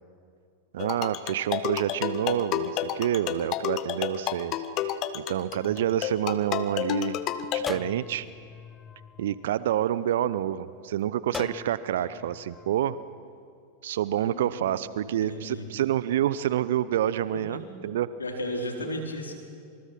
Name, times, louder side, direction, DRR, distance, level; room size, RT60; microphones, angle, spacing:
voice 1, 0.7-7.2 7.5-8.3 9.2-13.0 13.8-18.1, right 11 dB, 60° right, 16 dB, 0.8 m, -28 dB
sound 1, 0.8-7.7, left 10 dB, 35° left, 1.3 m, -31 dB
sound 2, 5.5-7.0 7.7-10.2 11.3-12.7, left 5 dB, 15° left, 0.7 m, -42 dB
voice 2, 14.2-14.6 15.0-15.7 17.3-17.6 18.2-19.3, left 1 dB, 75° left, 2 dB, 4.3 m, -35 dB
28.0 x 27.0 x 6.1 m, 2.3 s
figure-of-eight pair, 90°, 0 cm